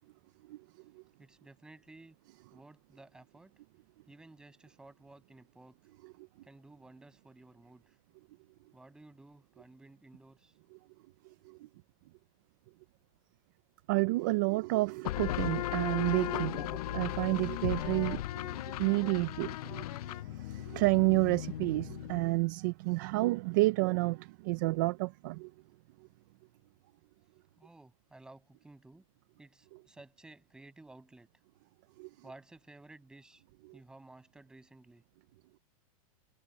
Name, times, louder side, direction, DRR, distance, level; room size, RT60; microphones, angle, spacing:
voice 1, 1.2-2.2 2.5-3.5 4.1-5.9 6.4-8.0 8.7-10.5 27.6-29.0 29.4-31.3 32.2-33.4 33.7-35.0, right 2 dB, 5° right, 6.9 m, -55 dB
voice 2, 13.9-18.2 18.7-25.5 32.0-32.1, right 24 dB, 35° right, 0.4 m, -30 dB
sound 1, 15.0-22.4, left 15 dB, 80° left, 0.4 m, -37 dB
supercardioid pair, 180°, 19 cm